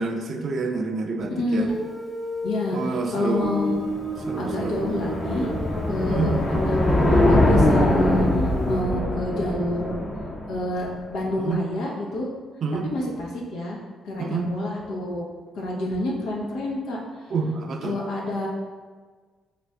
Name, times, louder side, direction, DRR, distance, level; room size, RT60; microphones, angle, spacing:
voice 1, 0.0-1.7 2.7-3.6 4.3-4.8 6.1-6.3 11.4-11.6 12.6-12.9 14.2-14.5 17.3-18.0, right 4 dB, 55° right, 4 dB, 0.5 m, -28 dB
Guitar, 1.7-8.3, equal, 5° left, 1.0 m, -34 dB
voice 2, 2.4-3.9 4.4-5.5 5.9-6.3 6.6-6.8 7.1-10.0 10.5-12.3 12.8-13.8 14.0-15.2 15.5-17.0 17.8-18.5, left 1 dB, 85° left, -2 dB, 0.9 m, -28 dB
sound 1, 3.5-10.9, left 1 dB, 40° left, 1.1 m, -22 dB
4.4 x 2.5 x 3.3 m, 1.4 s
cardioid pair, 90°, 0 cm